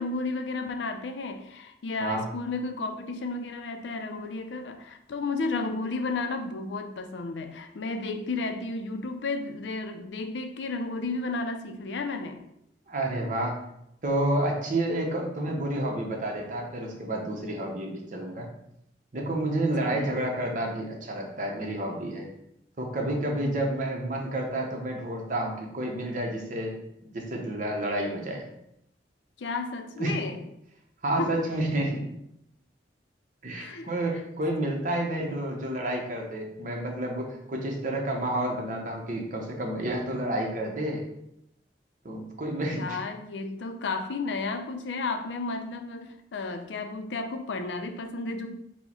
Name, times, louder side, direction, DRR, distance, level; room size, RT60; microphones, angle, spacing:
voice 1, 0.0-12.4 19.8-20.2 29.4-30.4 31.2-31.5 33.5-34.2 42.7-48.5, left 3 dB, 80° left, 7 dB, 0.5 m, -33 dB
voice 2, 12.9-13.6 14.0-18.5 19.1-22.3 22.8-26.8 27.0-28.5 30.0-30.1 31.0-32.1 33.4-41.0 42.0-43.0, right 1 dB, 45° right, 1 dB, 0.8 m, -30 dB
4.4 x 2.1 x 4.3 m, 0.79 s
head